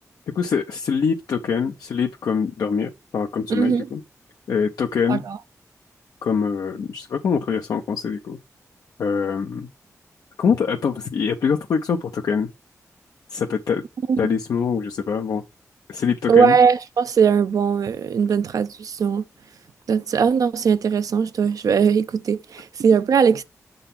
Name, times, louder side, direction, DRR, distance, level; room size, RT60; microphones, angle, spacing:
voice 1, 0.3-4.0 4.5-5.2 6.2-8.4 9.0-9.7 10.4-12.5 13.3-13.8 14.2-15.4 15.9-16.6, left 6 dB, 85° left, 0.6 m, -24 dB
voice 2, 3.5-3.9 5.1-5.4 14.1-14.3 16.3-19.2 19.9-23.4, right 6 dB, 80° right, 0.5 m, -19 dB
6.6 x 4.0 x 5.7 m
cardioid pair, 70°, 6 cm